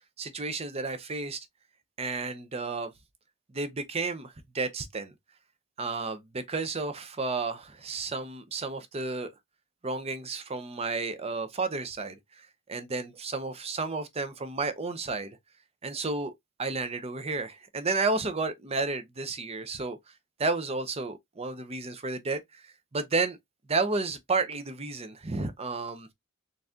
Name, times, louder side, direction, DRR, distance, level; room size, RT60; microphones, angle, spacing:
voice 1, 0.2-1.4 2.0-2.9 3.5-5.1 5.8-9.3 9.8-15.4 15.8-16.3 16.6-20.0 20.4-23.4 23.7-26.1, right 3 dB, 30° right, 0.6 m, -32 dB
4.0 x 3.4 x 2.4 m
head